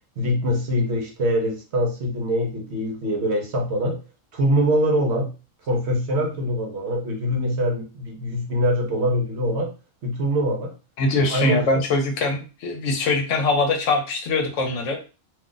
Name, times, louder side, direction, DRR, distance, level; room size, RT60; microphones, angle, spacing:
voice 1, 0.2-4.0 4.3-5.3 5.7-9.7 10.0-10.7 11.3-11.7, equal, 60° right, 2 dB, 0.9 m, -23 dB
voice 2, 11.0-15.0, left 3 dB, 70° left, 4 dB, 1.0 m, -22 dB
2.5 x 2.4 x 3.8 m, 0.32 s
omnidirectional pair, 1.4 m